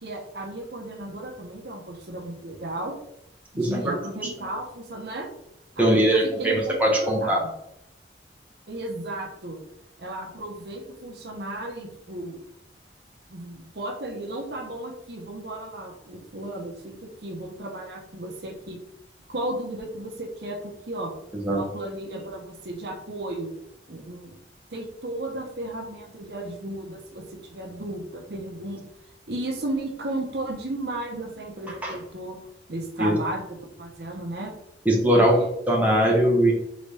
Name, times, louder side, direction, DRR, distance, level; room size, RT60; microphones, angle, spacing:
voice 1, 0.0-2.9 3.5-5.3 5.8-7.5 8.7-9.6 10.0-12.4 13.3-18.8 19.3-21.1 21.5-23.5 23.9-24.4 24.7-28.8 29.3-32.4 32.7-34.5 35.2-35.5, right 1 dB, 65° right, 1 dB, 0.9 m, -34 dB
voice 2, 3.6-3.9 5.8-7.4 21.4-21.6 31.8-31.9 33.0-33.2 34.8-36.5, right 1 dB, 10° right, -3 dB, 1.1 m, -21 dB
4.0 x 4.0 x 3.4 m, 0.78 s
head